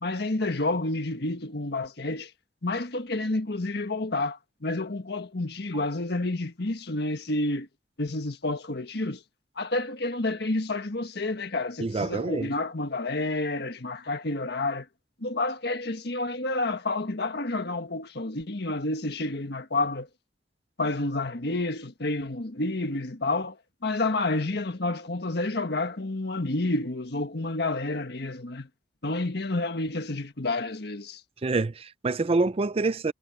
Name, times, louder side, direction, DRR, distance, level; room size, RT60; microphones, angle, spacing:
voice 1, 0.0-2.3 2.6-7.7 8.0-9.2 9.6-14.9 15.2-20.1 20.8-23.6 23.8-28.7 29.0-31.2, left 2 dB, 65° left, 1.5 m, -29 dB
voice 2, 11.8-12.5 31.4-33.1, right 3 dB, 35° right, 0.5 m, -26 dB
head